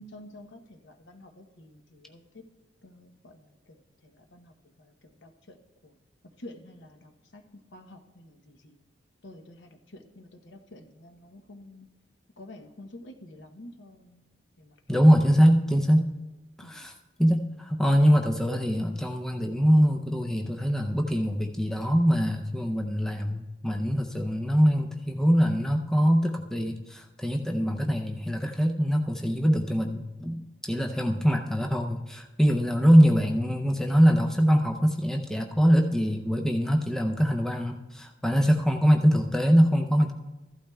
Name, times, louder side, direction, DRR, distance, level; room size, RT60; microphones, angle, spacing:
voice 1, 0.0-2.4 2.8-5.6 5.8-6.0 6.4-8.8 9.2-11.9 12.4-15.1 16.6-16.9, left 1 dB, 70° left, 6 dB, 0.8 m, -49 dB
voice 2, 14.9-16.1 16.7-16.9 17.2-40.1, equal, 5° left, 2 dB, 0.5 m, -23 dB
14.5 x 12.0 x 2.3 m, 1.1 s
head